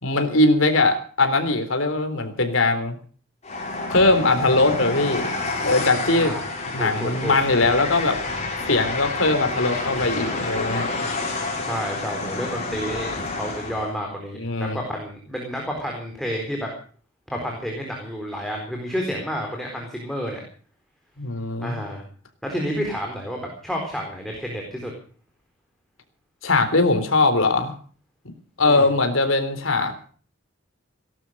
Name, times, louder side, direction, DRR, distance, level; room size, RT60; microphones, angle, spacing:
voice 1, 0.0-3.0 3.9-5.3 5.6-6.3 6.7-8.2 8.7-10.9 14.4-14.8 21.2-21.8 26.4-27.7 28.6-29.9, left 2 dB, 70° left, 7 dB, 3.8 m, -20 dB
Train, 3.4-13.9, left 3 dB, 35° left, 5.7 m, -29 dB
voice 2, 6.1-6.5 6.8-7.3 11.6-16.7 17.3-20.4 21.6-22.0 22.4-24.9 28.7-28.9, equal, ahead, 0 dB, 4.2 m, -30 dB
18.5 x 12.0 x 6.3 m, 0.44 s
head